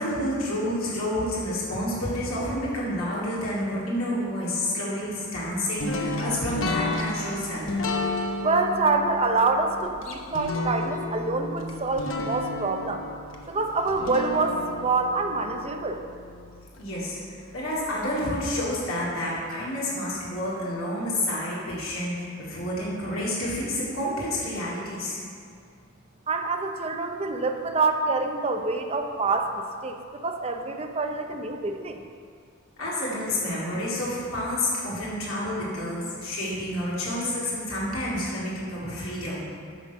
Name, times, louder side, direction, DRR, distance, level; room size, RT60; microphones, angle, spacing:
voice 1, 0.0-7.7 16.8-25.2 32.8-39.4, left 1 dB, 85° left, -7 dB, 2.7 m, -29 dB
sound 1, 5.8-16.8, left 2 dB, 65° left, 1.0 m, -32 dB
voice 2, 8.4-13.0 13.5-16.0 26.3-30.0 30.2-32.0, right 3 dB, 30° right, 5 dB, 0.6 m, -26 dB
9.2 x 6.2 x 5.8 m, 2.3 s
head